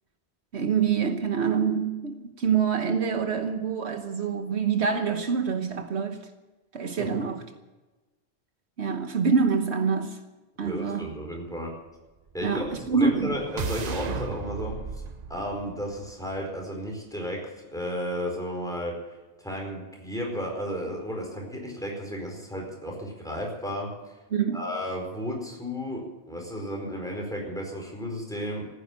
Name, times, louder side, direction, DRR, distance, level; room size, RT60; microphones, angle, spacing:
voice 1, 0.5-6.2 6.7-7.4 8.8-10.2 10.6-11.1 12.4-13.4 24.3-24.6, right 6 dB, 75° right, 7 dB, 1.4 m, -26 dB
voice 2, 10.6-11.7 12.3-14.8 15.3-19.0 19.4-23.9 24.5-28.7, equal, 5° left, 0 dB, 4.7 m, -33 dB
sound 1, 12.5-16.6, right 6 dB, 45° right, 0.7 m, -36 dB
15.5 x 9.9 x 9.3 m, 1.2 s
omnidirectional pair, 1.1 m